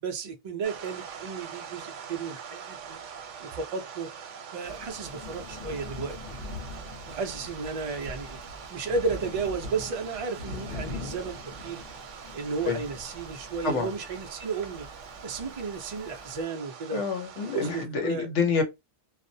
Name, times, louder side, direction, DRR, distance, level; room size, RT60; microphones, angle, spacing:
voice 1, 0.0-3.0 3.4-4.1 4.5-6.5 7.1-8.4 8.7-11.8 12.3-14.9 15.2-17.0 17.5-18.3, right 4 dB, 70° right, 0.3 m, -33 dB
sound 1, 0.6-17.9, right 7 dB, 85° right, 0.9 m, -44 dB
Thunder / Rain, 4.6-16.4, left 2 dB, 55° left, 1.0 m, -43 dB
voice 2, 16.9-18.6, left 5 dB, 80° left, 1.1 m, -27 dB
2.4 x 2.0 x 2.6 m
omnidirectional pair, 1.2 m